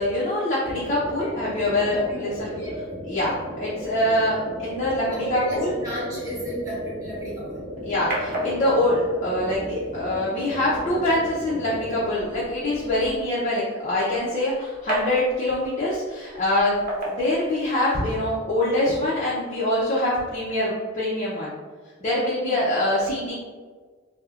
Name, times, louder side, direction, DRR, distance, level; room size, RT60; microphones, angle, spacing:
voice 1, 0.0-2.5 3.1-5.7 7.8-21.5 22.0-23.3, left 1 dB, 35° left, -8 dB, 0.5 m, -24 dB
sound 1, 0.6-12.1, equal, 90° right, 0.9 m, -36 dB
voice 2, 1.2-1.5 1.9-2.8 5.1-7.6, right 1 dB, 15° right, -7 dB, 1.2 m, -33 dB
sound 2, 7.1-18.1, equal, 45° right, 0.8 m, -36 dB
4.2 x 2.0 x 2.4 m, 1.5 s
head